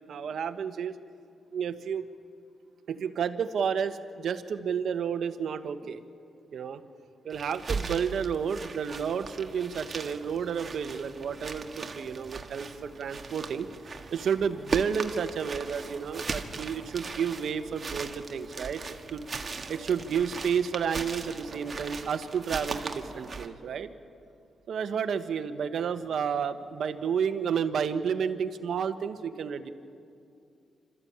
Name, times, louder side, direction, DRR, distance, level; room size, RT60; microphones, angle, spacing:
voice 1, 0.1-0.9 1.5-2.1 2.9-6.0 6.5-6.8 7.2-13.7 14.1-18.8 19.1-19.2 19.7-23.9 24.7-29.7, right 7 dB, 70° right, 9 dB, 1.2 m, -31 dB
sound 1, 7.3-23.5, right 4 dB, 40° right, 1.6 m, -39 dB
28.5 x 13.5 x 8.7 m, 2.5 s
cardioid pair, 95°, 0 cm